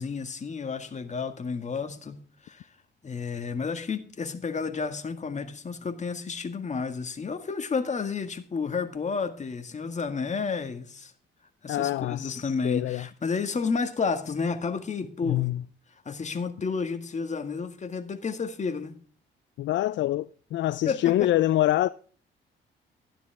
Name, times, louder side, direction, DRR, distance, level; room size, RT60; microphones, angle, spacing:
voice 1, 0.0-2.7 3.0-11.1 11.6-15.5 16.1-19.0 20.9-21.3, left 5 dB, 35° left, 1.9 m, -31 dB
voice 2, 11.7-13.0 15.2-15.6 19.6-20.3 20.5-21.9, left 14 dB, 65° left, 0.4 m, -25 dB
13.0 x 11.0 x 3.5 m
cardioid pair, 90°, 20 cm